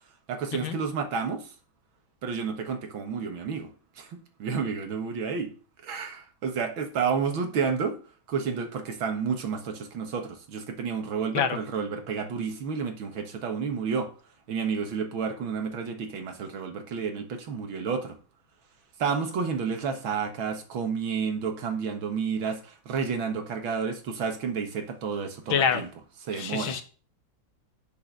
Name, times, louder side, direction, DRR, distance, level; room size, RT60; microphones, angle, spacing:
voice 1, 0.3-1.5 2.2-3.7 4.0-5.5 5.8-8.0 8.3-14.1 14.5-18.2 19.0-25.9 26.2-26.8, right 6 dB, 75° right, 2.3 m, -30 dB
voice 2, 25.5-25.8 26.3-26.8, left 7 dB, 75° left, 1.8 m, -26 dB
6.6 x 6.3 x 6.5 m
omnidirectional pair, 2.2 m